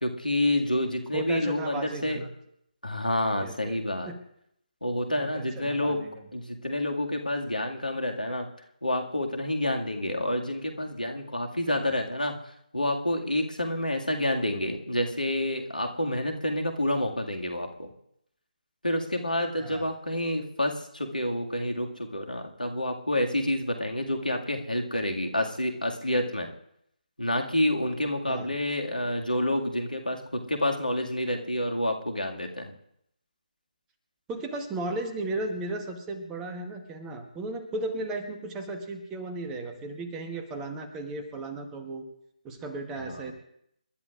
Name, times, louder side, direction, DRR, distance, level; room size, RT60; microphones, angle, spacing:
voice 1, 0.0-2.2 2.8-4.1 4.8-6.1 6.3-8.5 8.8-12.4 12.7-17.9 18.8-26.5 27.2-32.7 43.0-43.3, left 1 dB, 80° left, 2 dB, 2.0 m, -28 dB
voice 2, 1.1-2.3 3.4-4.2 5.2-6.1 11.7-11.9 19.6-19.9 28.3-28.5 34.3-42.0 42.4-43.3, right 2 dB, 10° right, 6 dB, 1.1 m, -35 dB
28.0 x 12.0 x 2.5 m, 0.74 s
figure-of-eight pair, 150°, 5 cm